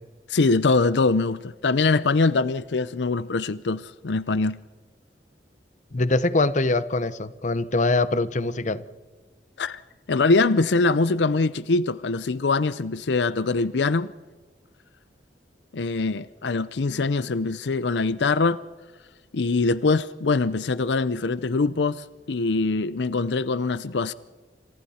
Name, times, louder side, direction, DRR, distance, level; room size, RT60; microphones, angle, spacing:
voice 1, 0.3-4.6 9.6-9.8 10.1-14.1 15.7-18.6 19.3-24.1, left 3 dB, 80° left, 0.6 m, -23 dB
voice 2, 5.9-8.8, left 2 dB, 45° left, 0.9 m, -23 dB
27.5 x 27.0 x 4.3 m
head